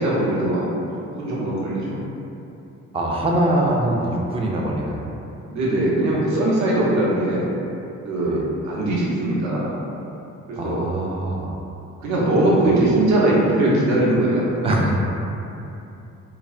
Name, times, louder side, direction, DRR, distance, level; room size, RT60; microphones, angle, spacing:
voice 1, 0.0-2.0 5.5-7.5 8.0-8.4 8.6-9.8 10.5-10.8 12.0-14.7, right 1 dB, 70° right, -6 dB, 0.8 m, -21 dB
voice 2, 2.9-5.1 8.2-8.4 10.6-11.6 12.6-12.8 14.6-15.0, right 1 dB, 20° right, -2 dB, 0.3 m, -23 dB
3.3 x 2.0 x 2.4 m, 2.8 s
cardioid pair, 90°, 30 cm